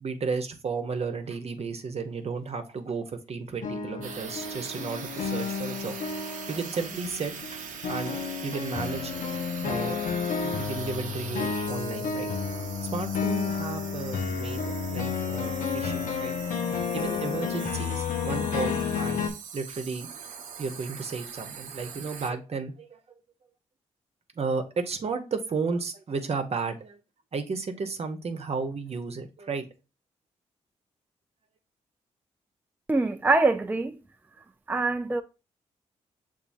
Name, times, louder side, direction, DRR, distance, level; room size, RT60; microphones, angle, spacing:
voice 1, 0.0-6.0 6.5-7.6 7.9-8.2 8.4-9.1 9.6-10.0 10.4-12.3 12.8-16.3 16.9-19.3 19.5-20.1 20.6-23.0 24.4-27.0 27.3-29.6, right 4 dB, 50° right, 0.9 m, -33 dB
sound 1, 3.6-19.3, left 6 dB, 80° left, 0.7 m, -31 dB
sound 2, 4.0-22.3, right 7 dB, 75° right, 0.7 m, -42 dB
voice 2, 32.9-34.0 34.7-35.2, right 3 dB, 15° right, 0.4 m, -24 dB
6.9 x 2.7 x 2.6 m
supercardioid pair, 50°, 13 cm